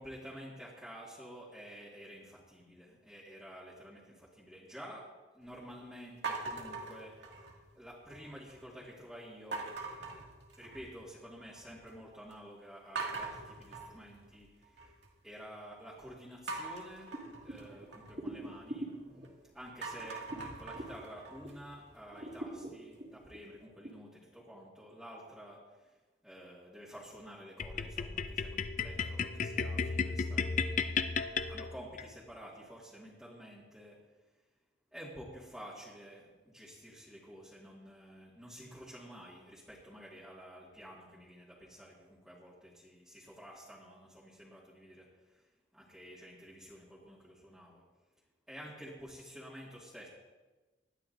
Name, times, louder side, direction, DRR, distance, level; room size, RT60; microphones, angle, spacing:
voice 1, 0.0-5.1 5.3-7.2 7.8-9.7 10.1-10.2 10.6-15.0 15.2-17.1 17.4-18.9 19.5-25.9 26.2-30.7 31.5-34.0 34.9-45.4 45.7-47.8 48.5-50.1, equal, ahead, -8 dB, 2.0 m, -50 dB
sound 1, 6.2-7.7 8.1-8.6 9.5-11.0 11.4-11.9 12.3-12.4 13.0-15.1 16.5-19.3 19.7-22.6, right 4 dB, 80° right, 2.3 m, -43 dB
sound 2, 17.1-21.7 22.1-23.9, right 1 dB, 45° right, 2.6 m, -45 dB
sound 3, 27.6-32.1, left 5 dB, 45° left, 0.6 m, -34 dB
19.5 x 12.5 x 2.7 m, 1.2 s
head